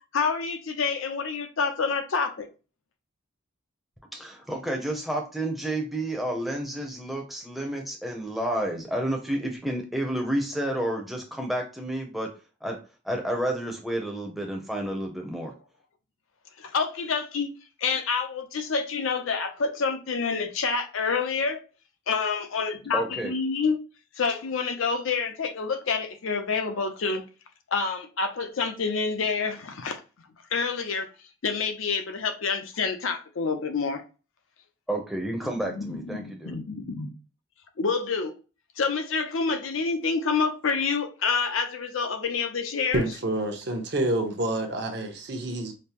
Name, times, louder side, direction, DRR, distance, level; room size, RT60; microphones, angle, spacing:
voice 1, 0.1-2.5 16.6-17.5 17.8-21.6 22.1-23.8 24.2-27.2 27.7-30.0 30.5-31.1 31.4-34.0 35.4-37.1 37.8-38.3 38.8-43.2, left 5 dB, 80° left, 0.6 m, -28 dB
voice 2, 4.1-12.3 12.6-12.8 13.0-15.5 22.9-23.3 34.9-36.5, right 1 dB, ahead, 0.6 m, -30 dB
voice 3, 42.9-45.7, right 1 dB, 55° right, 0.7 m, -28 dB
5.1 x 2.0 x 2.9 m
head